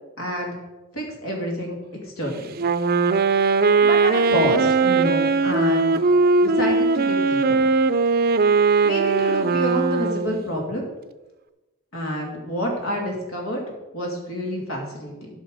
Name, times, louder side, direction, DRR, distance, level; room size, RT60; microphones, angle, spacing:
voice 1, 0.2-0.6 0.9-1.8 2.0-2.4 3.8-6.0 6.4-7.6 8.8-10.9 11.9-13.6 13.9-15.3, equal, 85° left, 0 dB, 2.6 m, -28 dB
Wind instrument woodwind instrument, 2.6-10.4, right 4 dB, 45° right, 0.5 m, -19 dB
13.0 x 5.8 x 5.0 m, 1.1 s
head